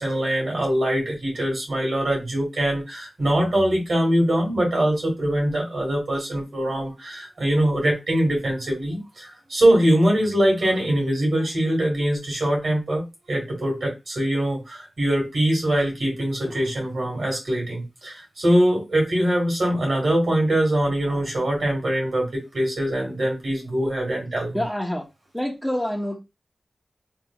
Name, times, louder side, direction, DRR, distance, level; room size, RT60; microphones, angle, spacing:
voice 1, 0.0-24.6, right 1 dB, 80° right, 1.8 m, -23 dB
voice 2, 24.5-25.0 25.3-26.2, left 1 dB, 5° left, 0.9 m, -26 dB
3.4 x 3.2 x 2.3 m
cardioid pair, 55°, 0 cm